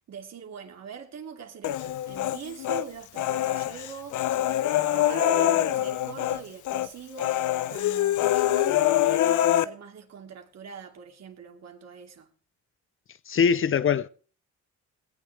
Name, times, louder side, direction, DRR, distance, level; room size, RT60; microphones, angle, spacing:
voice 1, 0.1-12.3, right 7 dB, 60° right, 3.0 m, -43 dB
Human voice, 1.6-2.8 3.2-6.4 6.6-6.9 7.2-9.6, left 13 dB, 75° left, 0.9 m, -24 dB
sound 1, 4.7-6.3, right 10 dB, 80° right, 1.5 m, -37 dB
voice 2, 13.3-14.1, left 7 dB, 45° left, 0.7 m, -22 dB
18.5 x 18.0 x 3.4 m
cardioid pair, 90°, 30 cm